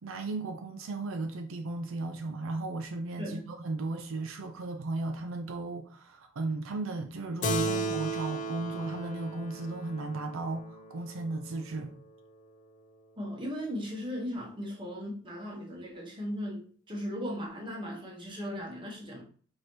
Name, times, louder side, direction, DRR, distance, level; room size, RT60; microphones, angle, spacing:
voice 1, 0.0-11.9, right 2 dB, 70° right, 0.4 m, -35 dB
Keyboard (musical), 7.4-12.3, right 2 dB, 35° left, 0.4 m, -35 dB
voice 2, 13.2-19.2, equal, 25° right, 0.9 m, -37 dB
4.7 x 2.7 x 3.0 m
head